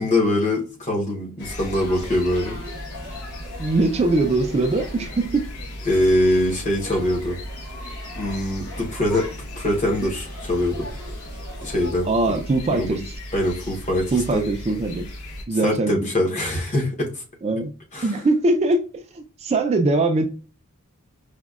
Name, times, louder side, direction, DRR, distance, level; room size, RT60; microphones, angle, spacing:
voice 1, 0.0-2.6 5.9-7.4 8.1-9.3 9.6-10.9 11.6-12.1 12.7-13.0 13.3-14.4 15.6-17.2 17.9-18.2, left 1 dB, 35° left, 0.8 m, -23 dB
sound 1, 1.4-15.4, left 1 dB, 75° left, 0.8 m, -37 dB
sound 2, 1.4-11.9, left 1 dB, 50° left, 1.3 m, -40 dB
voice 2, 3.6-5.4 12.1-13.0 14.1-15.0 15.5-16.1 17.4-17.7 18.0-18.8 19.1-20.3, right 2 dB, 30° right, 0.3 m, -21 dB
5.0 x 2.1 x 2.3 m
head